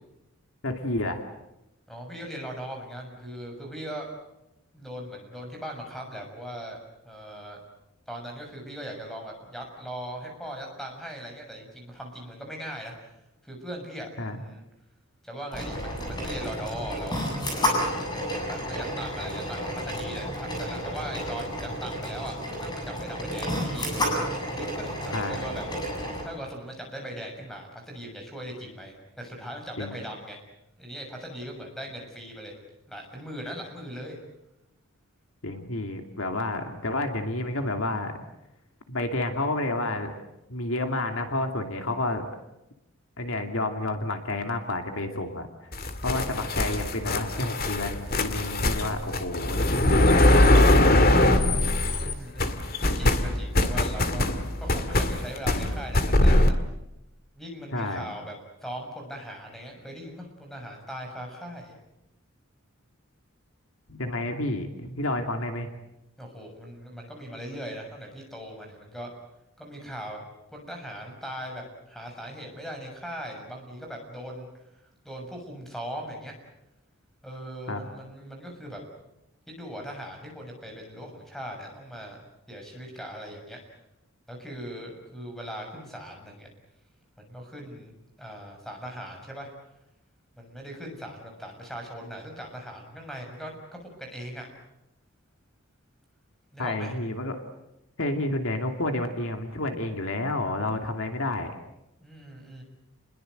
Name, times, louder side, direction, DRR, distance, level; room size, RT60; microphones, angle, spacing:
voice 1, 0.6-1.2 14.2-14.4 25.1-25.4 29.8-29.9 35.4-38.2 38.9-40.1 40.5-42.3 43.2-45.5 46.0-50.3 50.5-51.1 57.7-58.1 63.9-65.7 77.7-77.8 96.6-97.4 98.0-101.5, left 2 dB, 65° left, 5 dB, 2.6 m, -30 dB
voice 2, 1.9-4.1 4.7-6.8 7.0-7.6 8.1-12.9 13.4-14.6 15.2-17.2 18.3-23.9 24.5-25.6 26.2-30.4 30.8-32.5 32.9-34.2 52.0-54.3 54.6-56.6 57.3-58.3 58.6-61.8 66.2-69.1 69.6-70.2 70.5-74.5 75.0-76.3 77.2-78.8 79.5-82.2 82.5-83.6 84.3-86.5 87.2-87.9 88.2-89.5 90.4-94.5 96.5-97.0 102.0-102.6, equal, ahead, 2 dB, 6.8 m, -39 dB
sound 1, 15.5-26.2, equal, 20° left, 7.8 m, -31 dB
sound 2, 45.7-52.1 52.4-56.5, left 1 dB, 40° left, 2.1 m, -22 dB
30.0 x 21.5 x 7.9 m, 0.89 s
head